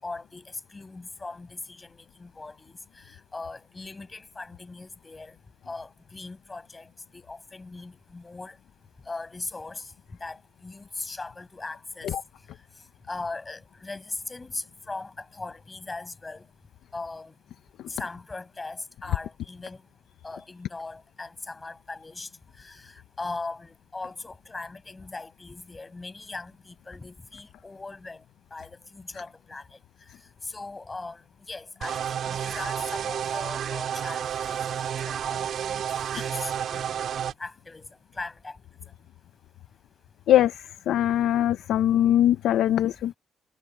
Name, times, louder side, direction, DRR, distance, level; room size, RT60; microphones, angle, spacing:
voice 1, 0.0-5.4 5.7-8.6 9.1-9.9 10.2-12.1 13.1-16.4 16.9-17.3 17.9-19.8 20.2-22.3 22.6-28.2 28.5-29.8 30.4-35.8 36.1-37.0 37.4-37.9 38.1-38.6 42.7-42.8, left 3 dB, 15° left, 6.2 m, -39 dB
sound 1, 31.8-37.3, right 9 dB, 55° right, 4.3 m, -30 dB
voice 2, 40.9-43.1, left 12 dB, 80° left, 0.6 m, -21 dB
cardioid pair, 170°, 0 cm